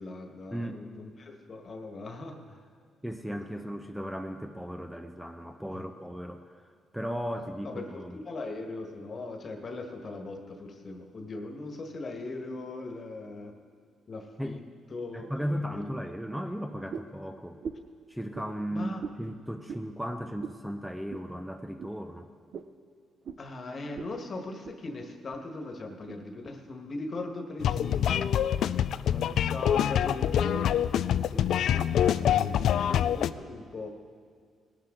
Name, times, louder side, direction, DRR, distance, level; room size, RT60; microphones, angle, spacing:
voice 1, 0.0-2.7 3.3-3.6 5.7-5.8 7.6-13.5 14.1-14.6 14.9-15.9 18.7-19.0 23.4-28.5 29.1-33.9, left 2 dB, 45° left, 4 dB, 1.5 m, -39 dB
voice 2, 0.5-0.9 3.0-6.6 6.9-8.2 14.4-14.6 15.1-17.6 18.1-18.9 19.2-22.3, equal, 5° right, 5 dB, 0.6 m, -36 dB
sound 1, 16.9-17.2 17.6-17.9 18.3-18.5 19.0-19.2 19.7-19.9 20.4-20.6 21.1-21.3 21.8-21.9 22.5-22.7 23.2-23.4 23.9-24.1 24.4-24.8 25.3-25.5 26.1-26.2, right 6 dB, 55° right, 0.6 m, -40 dB
sound 2, 27.6-33.3, left 10 dB, 70° left, 0.3 m, -25 dB
19.0 x 11.5 x 3.9 m, 2.1 s
cardioid pair, 90°, 0 cm